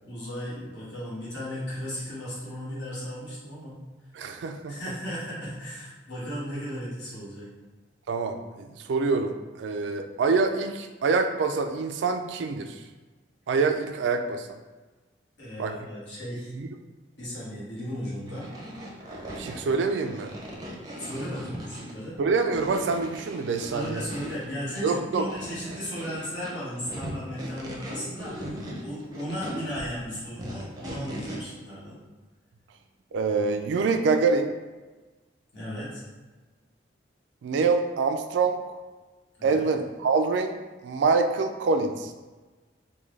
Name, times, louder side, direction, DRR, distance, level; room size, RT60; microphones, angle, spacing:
voice 1, 0.0-3.7 4.7-7.5 15.4-16.5 17.2-18.5 21.0-22.2 23.6-32.0 35.5-36.0 39.4-39.6, equal, 70° left, -8 dB, 1.4 m, -36 dB
voice 2, 4.2-4.7 8.1-12.7 13.5-14.5 15.6-15.7 16.6-16.7 19.3-20.4 22.2-24.0 24.8-25.2 33.1-34.5 37.4-38.6 39.4-40.5 40.8-42.1, right 4 dB, 75° right, 6 dB, 0.3 m, -25 dB
sound 1, 18.3-31.4, equal, 20° right, 0.5 m, -39 dB
3.5 x 2.2 x 3.2 m, 1.3 s
head